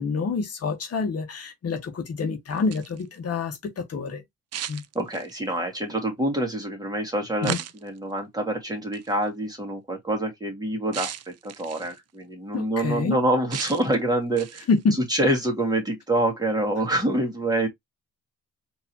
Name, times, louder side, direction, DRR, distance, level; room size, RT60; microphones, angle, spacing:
voice 1, 0.0-4.2 4.7-4.8 7.4-7.6 12.5-13.2 14.7-15.0, left 4 dB, 55° left, 1.4 m, -27 dB
sound 1, 2.5-3.0 4.5-5.5 7.4-8.0 8.9-9.1 10.9-12.0 13.5-14.0 14.4-14.8, right 11 dB, 55° right, 0.6 m, -35 dB
voice 2, 4.9-14.7 15.1-17.7, right 1 dB, 15° right, 2.1 m, -26 dB
4.5 x 3.1 x 2.9 m
cardioid pair, 90°, 30 cm